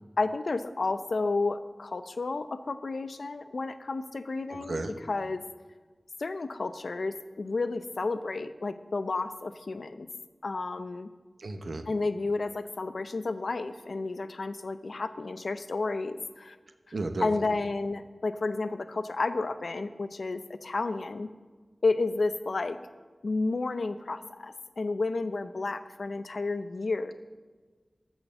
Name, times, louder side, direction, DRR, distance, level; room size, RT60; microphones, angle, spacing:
voice 1, 0.2-5.4 6.2-10.1 10.4-11.1 11.9-16.6 16.9-17.0 17.2-21.3 21.8-22.8 23.2-27.1, left 3 dB, 80° left, 11 dB, 0.6 m, -31 dB
voice 2, 4.5-4.9 11.4-11.8 16.9-17.3, right 2 dB, 80° right, 7 dB, 1.0 m, -33 dB
13.5 x 5.8 x 6.9 m, 1.4 s
wide cardioid pair, 70°, 0 cm